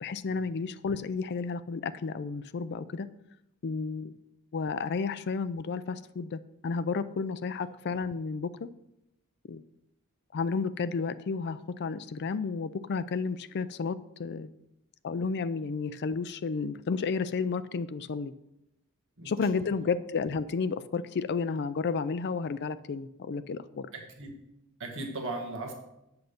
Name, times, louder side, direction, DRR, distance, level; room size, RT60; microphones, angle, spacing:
voice 1, 0.0-3.1 3.6-4.1 4.5-8.7 9.5-9.6 10.3-14.5 15.0-18.3 19.2-23.9, left 4 dB, 50° left, 13 dB, 0.4 m, -32 dB
voice 2, 19.2-20.0 23.9-24.4 24.8-25.7, right 2 dB, 60° right, 0 dB, 1.7 m, -39 dB
8.2 x 6.6 x 5.1 m, 0.86 s
head